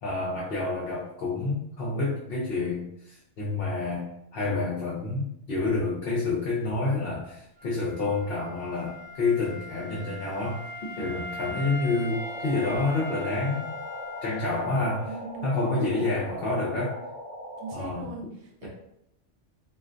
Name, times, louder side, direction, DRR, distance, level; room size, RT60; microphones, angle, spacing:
voice 1, 0.0-10.6 11.0-13.7 14.2-15.1 15.4-17.0 17.7-18.1 18.6-18.7, left 3 dB, 60° left, -4 dB, 0.8 m, -28 dB
Wind instrument woodwind instrument, 7.6-15.3, left 1 dB, 10° right, 0.7 m, -40 dB
sound 1, 12.1-17.8, equal, 35° left, 1.0 m, -40 dB
voice 2, 15.0-15.9 17.6-18.7, right 3 dB, 70° right, 0 dB, 1.0 m, -40 dB
3.2 x 2.4 x 2.5 m, 0.76 s
omnidirectional pair, 1.2 m